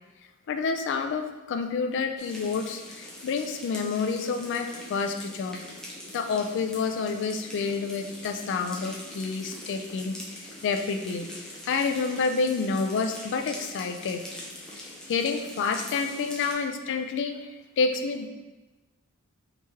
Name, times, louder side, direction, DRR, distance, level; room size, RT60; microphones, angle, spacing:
voice 1, 0.5-5.6 6.1-11.3 11.7-14.2 14.8-18.3, left 4 dB, 55° left, 6 dB, 0.3 m, -29 dB
sound 1, 2.2-16.5, left 1 dB, 5° left, 0.6 m, -43 dB
3.1 x 2.9 x 3.4 m, 1.1 s
head